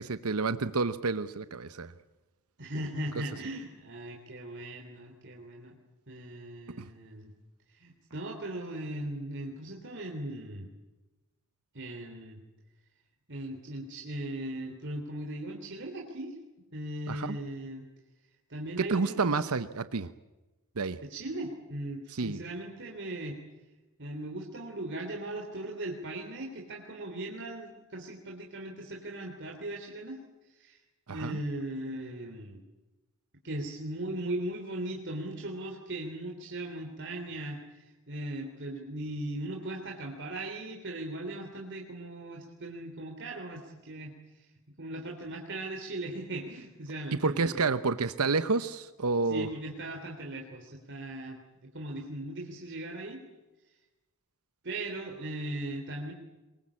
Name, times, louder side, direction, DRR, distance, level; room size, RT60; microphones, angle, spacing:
voice 1, 0.0-1.9 6.8-6.9 17.1-17.4 18.8-20.1 20.8-21.0 22.1-22.4 31.1-31.4 47.2-49.5, right 4 dB, 85° right, 12 dB, 0.9 m, -29 dB
voice 2, 2.6-5.8 6.1-7.3 7.7-10.7 11.7-12.4 13.3-16.4 16.7-17.8 18.5-19.5 21.0-23.4 24.0-30.2 30.4-30.8 31.1-32.6 33.4-44.5 44.8-47.7 49.2-53.2 54.6-56.1, right 1 dB, 55° right, 2 dB, 3.2 m, -38 dB
23.5 x 22.5 x 8.6 m, 1.1 s
head